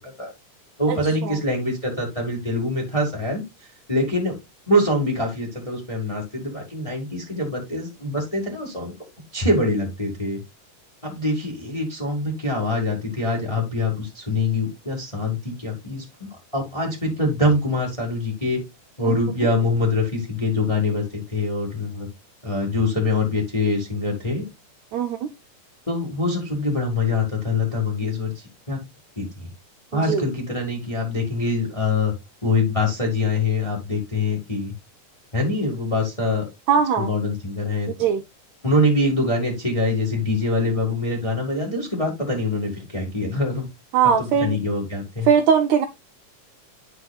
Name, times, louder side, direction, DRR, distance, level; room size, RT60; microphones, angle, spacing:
voice 1, 0.8-3.4 3.9-4.3 4.7-8.9 9.3-10.4 11.0-18.6 19.0-22.1 22.4-24.4 25.9-28.8 29.2-29.5 29.9-32.1 32.4-34.7 35.3-36.4 37.0-38.1 38.6-43.7 44.0-45.3, left 2 dB, 15° left, 1.2 m, -24 dB
voice 2, 24.9-25.3 29.9-30.3 36.7-37.1 38.0-38.2 43.9-44.6 45.2-45.8, right 7 dB, 80° right, 1.6 m, -20 dB
9.7 x 5.8 x 2.3 m
omnidirectional pair, 3.7 m